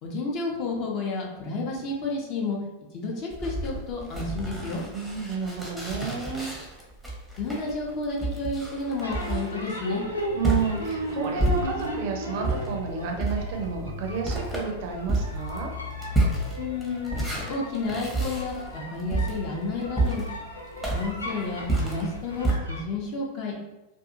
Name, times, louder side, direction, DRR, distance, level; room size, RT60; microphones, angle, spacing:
voice 1, 0.0-2.6 2.9-4.8 7.4-10.0 16.5-20.3 20.9-23.5, left 3 dB, 40° left, -1 dB, 0.6 m, -31 dB
sound 1, 3.3-12.0 12.4-22.6, right 2 dB, ahead, 0.7 m, -30 dB
voice 2, 4.9-6.5 10.3-15.7, right 5 dB, 50° right, 2 dB, 0.5 m, -31 dB
sound 2, 9.0-22.8, equal, 85° left, 0.4 m, -37 dB
sound 3, 10.0-17.0, left 4 dB, 70° left, 1.1 m, -41 dB
2.5 x 2.4 x 2.6 m, 1.0 s
figure-of-eight pair, 90°, 0 cm